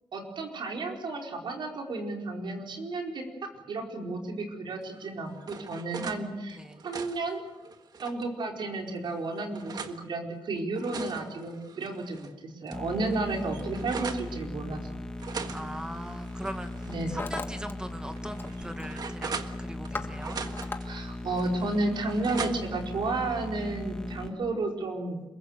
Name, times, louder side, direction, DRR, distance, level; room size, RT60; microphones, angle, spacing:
voice 1, 0.1-6.6 6.8-7.4 8.0-15.0 16.9-17.1 20.8-25.2, right 2 dB, 70° right, 1 dB, 4.8 m, -32 dB
sound 1, 4.9-6.2 6.6-8.3 8.9-10.0 10.6-12.3 12.7-12.8 13.1-14.3 15.2-17.0 17.4-17.5 18.1-19.9 20.2-20.9 21.4-22.9, right 5 dB, 55° right, 1.5 m, -40 dB
sound 2, 12.7-24.3, left 1 dB, 10° left, 2.1 m, -38 dB
Hammer, 15.2-15.4 16.2-16.5 16.8-17.7 18.0-18.5 18.8-19.1 19.5-20.8, left 3 dB, 25° left, 1.6 m, -39 dB
voice 2, 15.5-19.3 19.6-20.4, right 1 dB, 10° right, 7 dB, 1.7 m, -40 dB
27.0 x 22.5 x 6.7 m, 1.1 s
wide cardioid pair, 170°, 8 cm